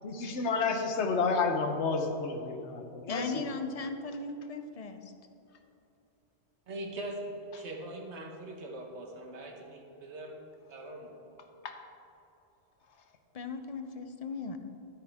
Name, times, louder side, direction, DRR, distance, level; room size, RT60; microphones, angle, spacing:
voice 1, 0.0-3.4 11.6-11.8, left 4 dB, 70° left, 5 dB, 1.2 m, -30 dB
voice 2, 3.1-5.1 13.3-14.6, left 4 dB, 40° left, 7 dB, 0.6 m, -37 dB
voice 3, 6.7-10.4 10.7-11.4, right 1 dB, 70° right, 1 dB, 1.5 m, -42 dB
12.5 x 9.0 x 3.6 m, 2.9 s
omnidirectional pair, 1.2 m